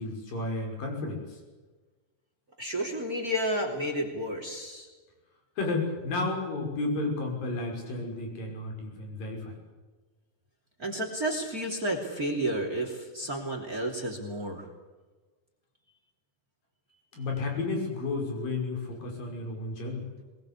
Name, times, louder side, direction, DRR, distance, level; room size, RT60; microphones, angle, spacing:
voice 1, 0.0-1.4 5.6-9.6 17.1-20.1, left 3 dB, 55° left, 2 dB, 7.4 m, -32 dB
voice 2, 2.6-4.9 10.8-14.7, right 1 dB, 25° right, 4 dB, 2.8 m, -31 dB
22.5 x 21.5 x 8.4 m, 1.3 s
omnidirectional pair, 4.7 m